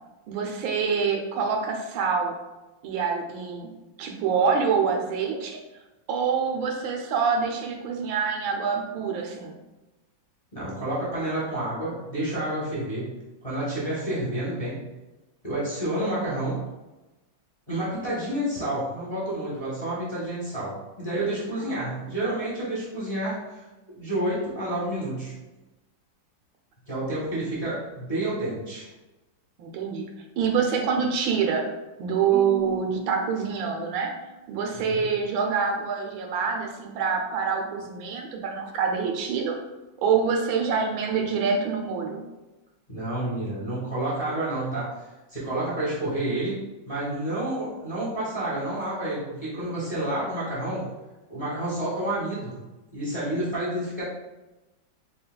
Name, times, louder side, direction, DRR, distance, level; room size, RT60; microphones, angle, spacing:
voice 1, 0.3-2.3 2.8-3.7 4.0-5.6 6.1-9.5 21.8-21.9 29.6-30.1 30.4-31.7 32.0-34.1 34.5-39.5 40.0-42.2, right 6 dB, 80° right, 2 dB, 1.4 m, -26 dB
voice 2, 10.5-13.1 13.4-14.8 15.4-16.6 17.7-23.6 24.0-25.3 26.9-28.9 34.8-35.0 42.9-50.9 51.3-52.5 52.9-54.0, right 1 dB, 25° left, -8 dB, 0.9 m, -29 dB
Marimba xylophone / Wood, 32.3-34.5, right 4 dB, 40° right, 1.7 m, -38 dB
6.5 x 2.2 x 2.2 m, 1.1 s
omnidirectional pair, 2.1 m